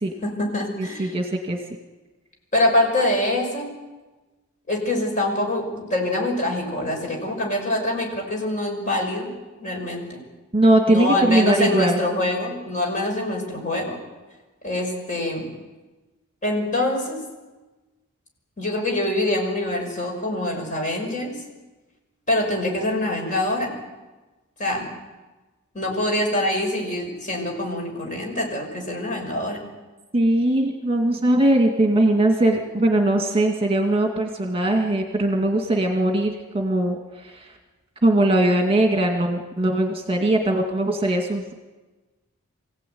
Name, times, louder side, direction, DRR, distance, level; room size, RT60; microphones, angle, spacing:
voice 1, 0.2-1.2 2.5-3.7 4.7-9.3 9.6-10.2 10.9-14.0 14.6-15.5 16.4-17.2 18.6-21.3 22.3-23.7 24.6-24.9 25.7-29.6, left 1 dB, 35° left, 1 dB, 6.1 m, -25 dB
voice 2, 1.0-1.6 10.5-12.0 30.1-37.4 38.0-41.5, right 1 dB, 25° right, 3 dB, 2.2 m, -20 dB
25.5 x 16.5 x 9.4 m, 1.2 s
head